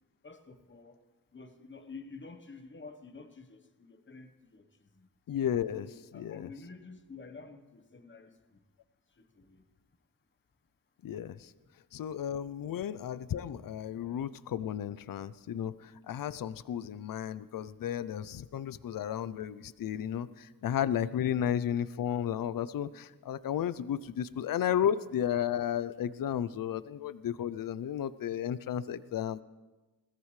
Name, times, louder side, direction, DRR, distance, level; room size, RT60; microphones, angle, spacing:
voice 1, 0.2-1.0 1.3-5.1 5.7-8.6 9.2-9.6, left 4 dB, 30° left, 7 dB, 1.1 m, -50 dB
voice 2, 5.3-5.9 6.1-6.5 11.0-11.5 11.9-29.4, left 9 dB, 60° left, 16 dB, 0.5 m, -33 dB
21.0 x 17.0 x 3.2 m, 1.2 s
wide cardioid pair, 125°, 38 cm